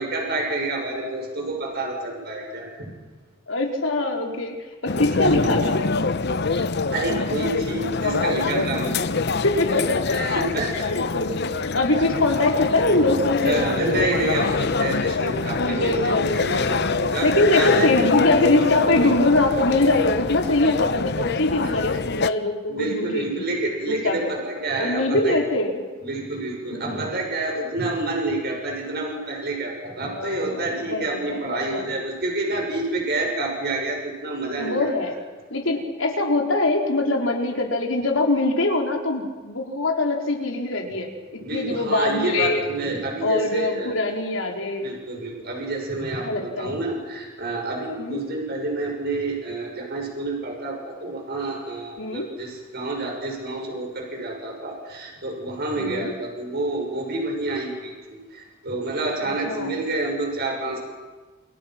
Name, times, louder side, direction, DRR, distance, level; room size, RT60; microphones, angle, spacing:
voice 1, 0.0-2.9 5.2-5.4 6.9-9.1 10.1-10.9 13.4-17.9 21.6-21.7 22.7-25.4 26.0-35.2 41.4-43.9 44.8-60.8, right 2 dB, 55° right, 1 dB, 6.3 m, -28 dB
voice 2, 3.5-4.6 4.8-5.8 9.4-10.0 10.7-13.6 15.6-16.7 17.2-23.4 23.9-24.3 24.8-25.8 26.7-27.0 30.0-30.6 30.9-31.8 34.6-35.1 35.5-42.6 43.2-44.9 46.2-46.8 48.0-48.2 52.0-52.3 55.8-56.1 59.2-59.7, left 2 dB, 75° left, 2 dB, 4.3 m, -23 dB
sound 1, 4.9-22.3, left 4 dB, 55° left, 0.9 m, -24 dB
28.5 x 28.0 x 6.1 m, 1.3 s
head